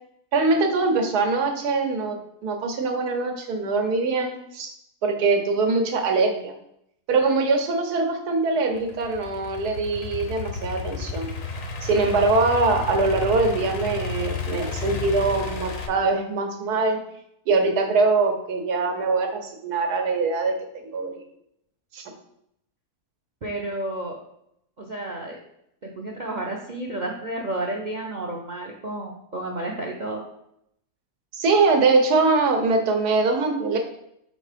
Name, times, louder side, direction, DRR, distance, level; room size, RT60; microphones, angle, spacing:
voice 1, 0.3-4.7 5.0-6.5 7.1-11.3 11.8-17.0 17.5-20.5 20.9-21.2 21.9-22.0 31.3-33.8, right 3 dB, 85° right, 4 dB, 1.5 m, -22 dB
Idling / Accelerating revving vroom, 8.8-15.9, left 5 dB, 65° left, 1.1 m, -32 dB
voice 2, 23.4-24.2 24.8-25.4 25.8-30.2, right 1 dB, 55° right, 0 dB, 0.5 m, -31 dB
5.3 x 3.6 x 4.9 m, 0.76 s
omnidirectional pair, 1.6 m